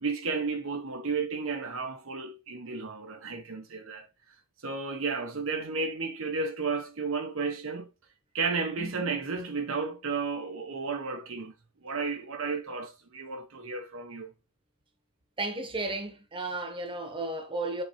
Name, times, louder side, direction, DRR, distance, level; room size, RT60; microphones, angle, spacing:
voice 1, 0.0-4.1 4.6-7.9 8.3-11.5 11.8-14.3, right 4 dB, 65° right, 1.0 m, -33 dB
voice 2, 8.8-9.2 15.4-17.8, right 2 dB, 25° right, 1.2 m, -34 dB
7.9 x 4.6 x 3.1 m
head